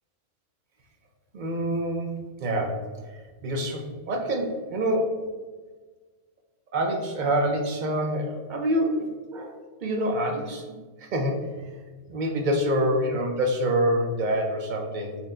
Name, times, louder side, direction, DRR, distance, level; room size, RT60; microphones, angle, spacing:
voice 1, 1.3-2.1 2.4-5.2 6.7-9.5 9.8-11.6 12.1-15.2, right 1 dB, 60° right, 2 dB, 0.5 m, -26 dB
4.3 x 2.1 x 3.6 m, 1.4 s
omnidirectional pair, 1.3 m